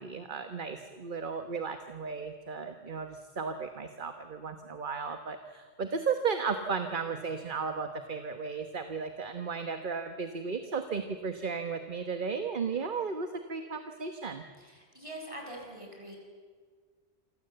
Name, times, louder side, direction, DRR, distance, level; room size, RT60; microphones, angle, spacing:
voice 1, 0.0-14.4, right 5 dB, 50° right, 7 dB, 1.4 m, -35 dB
voice 2, 14.6-16.2, right 1 dB, 30° right, 1 dB, 6.6 m, -44 dB
27.5 x 24.5 x 7.9 m, 1.5 s
omnidirectional pair, 1.1 m